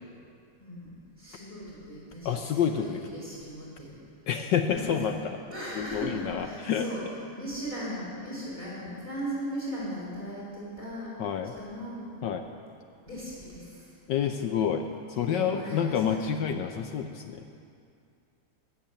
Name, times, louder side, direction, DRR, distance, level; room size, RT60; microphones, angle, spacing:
voice 1, 0.6-4.0 4.7-4.9 5.3-11.2 11.6-12.1 13.1-14.0 15.1-16.2, equal, 5° left, -6 dB, 3.1 m, -38 dB
voice 2, 2.2-3.0 4.3-5.4 5.8-6.9 11.2-11.5 12.2-12.4 14.1-17.4, left 8 dB, 70° left, 6 dB, 1.1 m, -28 dB
14.0 x 7.4 x 8.9 m, 2.4 s
omnidirectional pair, 2.4 m